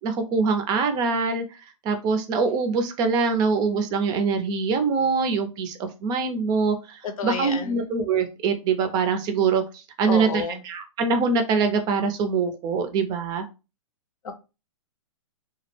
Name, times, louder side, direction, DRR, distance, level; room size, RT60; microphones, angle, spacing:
voice 1, 0.0-1.4 1.8-13.4, right 5 dB, 25° right, 7 dB, 0.4 m, -24 dB
voice 2, 7.0-7.8 10.1-10.6 14.2-14.3, left 5 dB, 75° left, 7 dB, 0.7 m, -30 dB
2.2 x 2.0 x 3.2 m, 0.29 s
hypercardioid pair, 135°, 18 cm